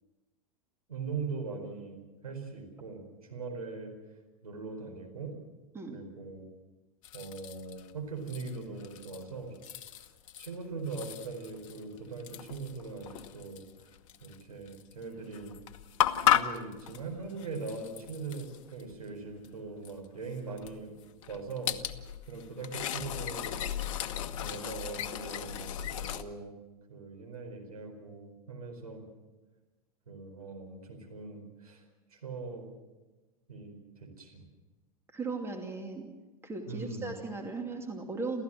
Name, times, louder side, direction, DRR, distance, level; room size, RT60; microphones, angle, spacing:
voice 1, 0.9-2.0 2.2-3.0 3.3-3.9 4.4-5.4 5.9-6.4 7.1-9.6 10.4-13.6 14.2-15.5 16.2-20.9 21.3-21.7 22.3-23.6 24.4-26.5 26.9-29.0 30.1-31.8 32.1-32.7 33.5-34.5 36.7-37.1, right 4 dB, 75° right, 2 dB, 4.8 m, -41 dB
sound 1, 7.0-7.9 8.3-9.3 9.6-10.5 10.9-14.4 14.7-14.9 15.3-19.0 19.4-19.5 19.8-19.9 20.5-26.2, left 10 dB, 55° left, 1.1 m, -35 dB
voice 2, 35.1-36.1 36.4-38.4, right 3 dB, 15° right, 3 dB, 2.7 m, -37 dB
28.0 x 14.5 x 7.7 m, 1.2 s
figure-of-eight pair, 85°, 19 cm